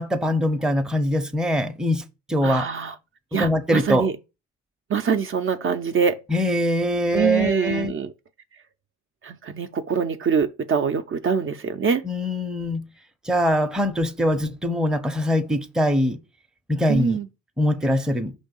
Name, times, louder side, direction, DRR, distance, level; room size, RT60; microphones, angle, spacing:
voice 1, 0.0-2.0 2.3-2.7 3.3-4.1 6.3-7.9 12.0-12.8 13.2-16.2 16.7-17.2 17.6-18.3, equal, ahead, 0.6 m, -22 dB
voice 2, 2.4-2.9 3.3-4.1 4.9-6.2 7.1-8.1 9.2-12.0 16.9-17.3, right 6 dB, 45° right, 0.6 m, -24 dB
5.3 x 3.3 x 5.3 m
cardioid pair, 90°, 30 cm